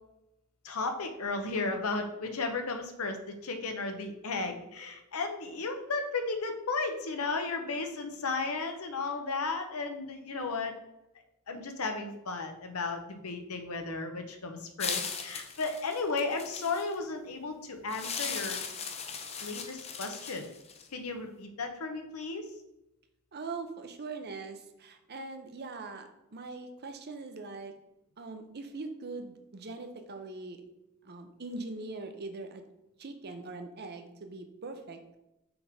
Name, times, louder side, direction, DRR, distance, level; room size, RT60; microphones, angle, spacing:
voice 1, 0.6-10.8 11.5-18.6 19.4-20.5 20.9-22.5, left 3 dB, 85° left, 5 dB, 0.9 m, -34 dB
sound 1, 14.8-16.9 17.9-20.9, left 6 dB, 30° left, 0.6 m, -38 dB
voice 2, 23.3-27.8 28.2-30.6 31.0-32.6 33.0-35.0, right 3 dB, 50° right, 7 dB, 0.7 m, -41 dB
6.1 x 3.6 x 5.1 m, 0.89 s
head